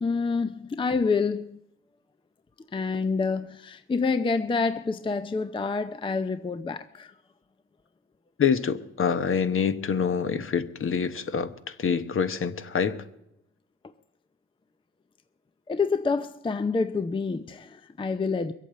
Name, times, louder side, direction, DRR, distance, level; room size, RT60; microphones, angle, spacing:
voice 1, 0.0-1.6 2.7-7.1 15.7-18.5, left 4 dB, 15° left, 0.5 m, -27 dB
voice 2, 8.4-13.0, left 6 dB, 45° left, 1.0 m, -26 dB
22.0 x 8.3 x 7.7 m
cardioid pair, 90°, 30 cm